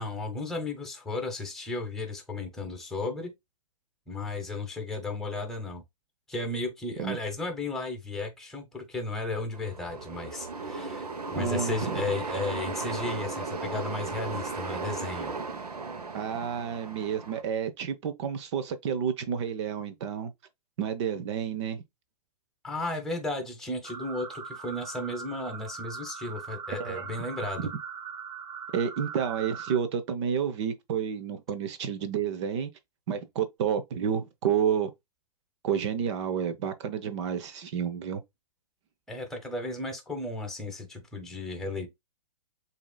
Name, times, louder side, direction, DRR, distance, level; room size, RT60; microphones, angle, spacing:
voice 1, 0.0-3.3 4.1-5.8 6.3-15.3 22.6-27.7 39.1-41.9, left 2 dB, ahead, 1.2 m, -34 dB
sound 1, 9.5-17.4, right 4 dB, 85° right, 1.0 m, -36 dB
voice 2, 11.4-12.0 16.1-20.3 20.8-21.8 26.8-27.1 27.6-27.7 28.7-32.7 33.1-34.9 35.6-38.2, right 8 dB, 50° right, 0.7 m, -30 dB
sound 2, 23.8-29.8, right 6 dB, 15° right, 0.5 m, -40 dB
7.0 x 2.8 x 2.2 m
hypercardioid pair, 125°, 20 cm